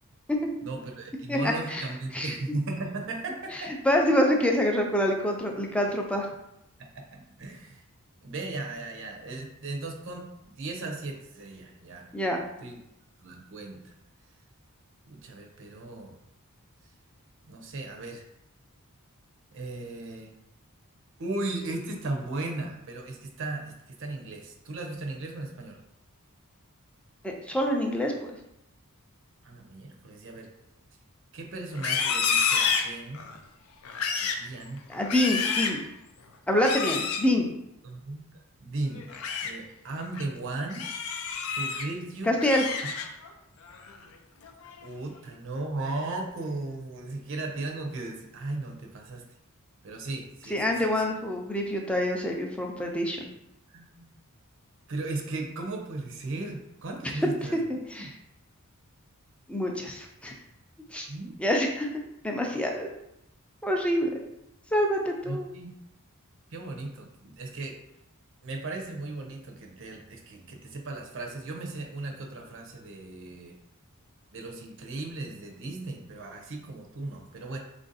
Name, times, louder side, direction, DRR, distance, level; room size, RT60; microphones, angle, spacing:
voice 1, 0.6-3.8 6.8-7.8 8.2-12.1 12.6-12.8 13.2-13.9 15.1-16.2 17.5-18.2 19.5-20.3 21.2-25.8 29.4-30.5 31.3-33.2 34.2-34.8 37.8-38.2 38.6-40.9 41.5-42.4 42.8-42.9 44.8-49.2 49.8-51.1 53.7-54.1 54.9-57.6 58.0-58.1 61.1-61.5 65.2-65.7 66.5-67.8 68.4-73.6 74.3-77.6, right 2 dB, 60° right, 2 dB, 0.6 m, -36 dB
voice 2, 1.3-1.8 2.1-2.3 3.5-6.3 12.1-12.4 27.2-28.3 34.9-35.8 36.5-37.5 42.3-42.6 50.5-53.3 57.2-57.3 57.7-58.1 59.5-60.3 60.9-61.1 61.4-61.9 62.2-62.9 63.6-64.1 64.7-65.5, left 1 dB, 5° left, 1 dB, 0.4 m, -26 dB
Livestock farm animals working animals, 31.7-33.4 33.8-34.5 34.9-35.8 36.6-37.3 38.9-39.5 40.0-40.2 40.7-41.9 42.2-43.3 43.7-44.0 44.4-44.9, left 6 dB, 70° left, 0.4 m, -29 dB
3.3 x 2.5 x 3.9 m, 0.82 s
head